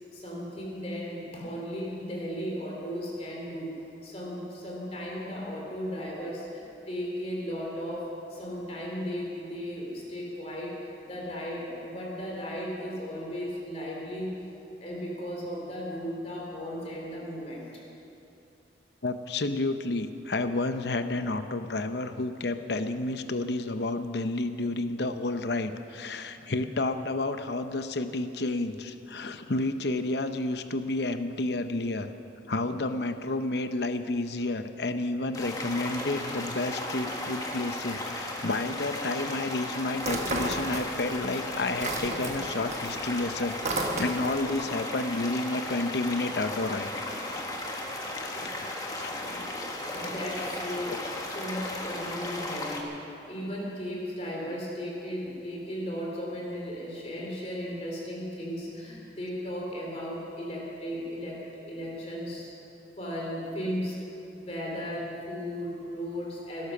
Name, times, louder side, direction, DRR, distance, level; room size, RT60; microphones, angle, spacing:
voice 1, 0.1-3.7 4.0-10.8 11.0-14.3 14.8-17.6 48.3-48.6 49.1-49.4 49.9-62.5 63.0-64.0 64.4-66.7, equal, 35° left, -2 dB, 3.4 m, -36 dB
voice 2, 19.0-32.1 32.5-46.9 47.3-47.4 47.9-49.1, left 2 dB, 65° left, 9 dB, 0.8 m, -31 dB
sound 1, 35.3-52.8, left 1 dB, 20° left, 1.5 m, -35 dB
sound 2, 40.0-41.2 41.5-44.5, right 2 dB, 40° right, 1.4 m, -33 dB
19.0 x 12.0 x 6.1 m, 2.8 s
head